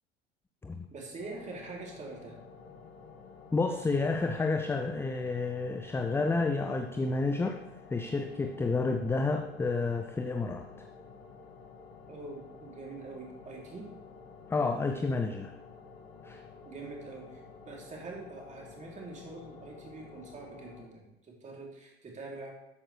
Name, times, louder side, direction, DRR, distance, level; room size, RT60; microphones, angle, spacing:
voice 1, 0.9-2.4 12.1-13.9 16.6-22.5, right 3 dB, 20° right, -2 dB, 3.2 m, -44 dB
sound 1, 1.2-20.9, left 5 dB, 35° left, 2.0 m, -51 dB
voice 2, 3.5-7.6 7.9-10.7 14.5-15.5 16.2-16.4, left 3 dB, 5° left, 6 dB, 0.6 m, -30 dB
12.5 x 8.7 x 3.3 m, 0.94 s
figure-of-eight pair, 80°, 32 cm